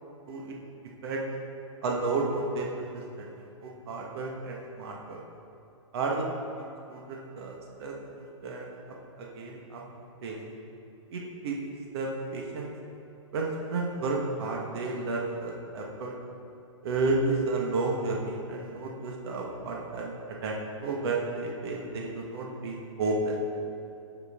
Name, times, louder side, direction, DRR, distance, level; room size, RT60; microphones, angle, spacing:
voice 1, 1.8-2.9 3.6-5.2 5.9-6.3 6.9-7.5 7.8-8.6 9.2-9.8 10.2-10.4 11.1-11.5 11.9-12.7 13.3-16.1 16.8-20.1 20.4-23.4, right 3 dB, 50° right, -1 dB, 1.6 m, -31 dB
16.5 x 6.6 x 3.7 m, 2.7 s
hypercardioid pair, 150°, 16 cm